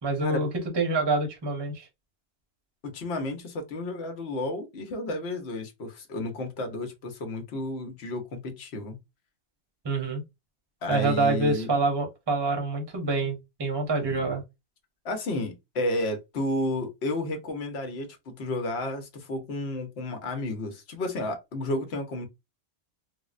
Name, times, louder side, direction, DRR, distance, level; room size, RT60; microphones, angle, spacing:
voice 1, 0.0-1.9 9.8-10.2 10.9-14.4, right 3 dB, 25° right, 0.8 m, -26 dB
voice 2, 2.8-9.0 10.8-11.7 14.1-14.3 15.0-22.3, left 2 dB, 65° left, 1.1 m, -32 dB
3.5 x 2.1 x 2.4 m
omnidirectional pair, 1.2 m